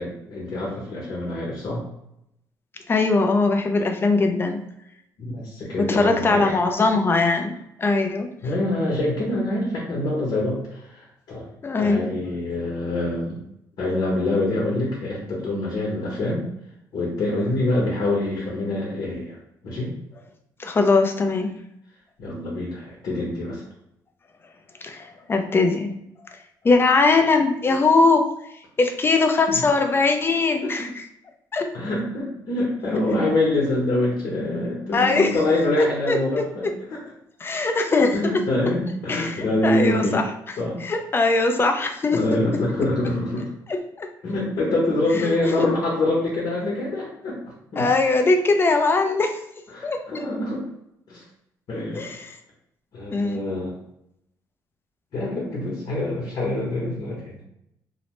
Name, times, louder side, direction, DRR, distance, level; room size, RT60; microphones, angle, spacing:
voice 1, 0.0-1.8 5.2-6.6 8.4-11.5 11.8-13.4 13.8-16.4 16.9-19.4 19.6-19.9 22.2-23.6 30.6-30.9 31.7-37.0 38.1-40.2 40.6-40.8 42.1-43.5 44.2-47.4 47.7-47.9 49.7-50.6 51.1-51.2 51.7-52.0 52.9-53.7 55.1-57.5, left 1 dB, 60° left, -4 dB, 1.0 m, -25 dB
voice 2, 2.9-4.6 5.8-8.3 11.6-12.1 20.6-21.5 24.8-25.9 26.6-28.2 28.8-30.9 31.5-31.7 34.9-35.4 35.8-36.2 37.4-38.4 39.1-40.2 40.8-42.2 44.0-44.1 45.2-45.3 45.6-45.7 47.8-49.4 49.8-50.0 52.0-52.3 53.1-53.4, left 3 dB, 30° left, 5 dB, 0.5 m, -20 dB
2.8 x 2.1 x 3.0 m, 0.79 s
cardioid pair, 80°, 8 cm